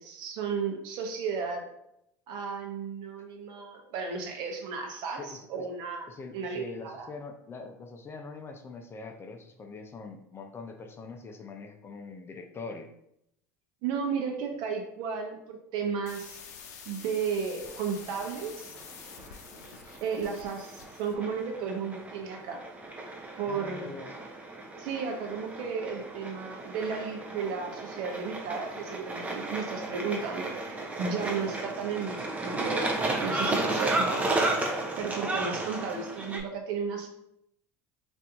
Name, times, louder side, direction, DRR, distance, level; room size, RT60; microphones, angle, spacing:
voice 1, 0.0-1.7 2.3-7.1 13.8-16.4 16.9-18.5 20.0-22.6 23.4-23.9 24.8-32.9 33.2-37.1, right 5 dB, 60° right, 3 dB, 0.8 m, -34 dB
voice 2, 5.2-5.7 6.1-12.9 23.5-24.1, left 4 dB, 30° left, 5 dB, 0.5 m, -43 dB
sound 1, 16.0-21.2, left 6 dB, 85° left, 0.5 m, -47 dB
sound 2, 17.6-36.4, right 2 dB, 15° right, 0.6 m, -34 dB
2.8 x 2.6 x 3.4 m, 0.78 s
hypercardioid pair, 90°, 9 cm